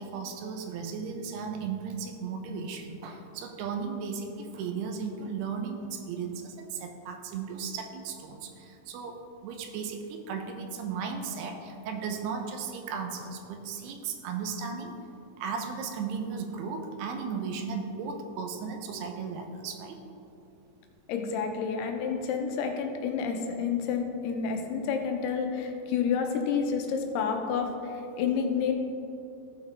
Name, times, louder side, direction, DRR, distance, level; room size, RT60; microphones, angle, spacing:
voice 1, 0.0-14.9 15.4-20.0, right 5 dB, 85° right, 5 dB, 2.7 m, -36 dB
voice 2, 21.1-28.7, left 6 dB, 90° left, 4 dB, 2.7 m, -29 dB
14.5 x 5.8 x 3.4 m, 2.8 s
omnidirectional pair, 4.7 m